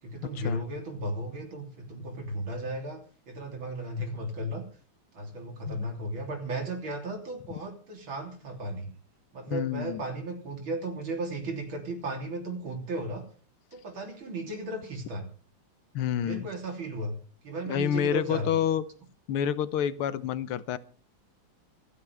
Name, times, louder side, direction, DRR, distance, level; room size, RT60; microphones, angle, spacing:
voice 1, 0.0-4.6 5.1-8.9 9.3-13.3 13.7-15.3 16.2-17.1 17.4-18.6, right 1 dB, 65° right, 3 dB, 4.0 m, -35 dB
voice 2, 9.5-10.0 15.9-16.5 17.7-18.8 19.3-20.8, left 9 dB, 85° left, 15 dB, 1.7 m, -28 dB
27.0 x 9.7 x 3.5 m, 0.38 s
omnidirectional pair, 2.4 m